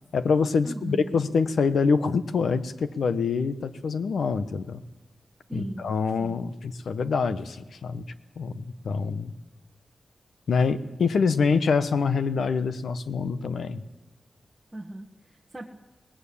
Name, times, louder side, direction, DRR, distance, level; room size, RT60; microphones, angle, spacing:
voice 1, 0.1-4.8 5.5-8.0 8.4-9.3 10.5-13.8, left 5 dB, 85° left, 11 dB, 1.2 m, -25 dB
voice 2, 0.6-1.2 5.5-5.8 6.2-6.4 14.7-15.6, right 1 dB, 10° right, 0 dB, 1.7 m, -37 dB
23.0 x 19.0 x 8.7 m, 1.1 s
wide cardioid pair, 125°, 0 cm